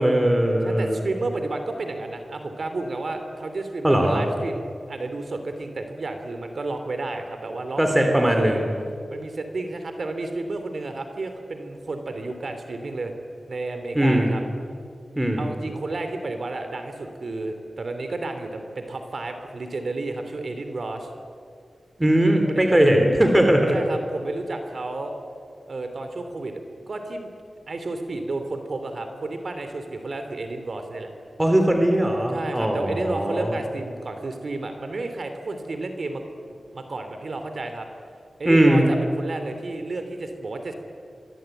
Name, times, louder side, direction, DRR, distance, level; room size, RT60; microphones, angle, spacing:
voice 1, 0.0-1.0 3.8-4.2 7.8-8.7 13.9-14.3 15.1-15.4 22.0-23.8 31.4-33.5 38.4-38.9, right 1 dB, 15° right, 3 dB, 3.3 m, -19 dB
voice 2, 0.6-8.7 9.1-13.1 13.5-14.4 15.4-21.1 22.5-22.8 23.2-25.1 25.7-26.5 26.9-27.3 27.7-31.1 32.3-36.2 36.7-37.9 38.4-40.7, right 2 dB, 55° right, 7 dB, 2.9 m, -31 dB
24.5 x 24.0 x 9.1 m, 2.3 s
wide cardioid pair, 105°, 0 cm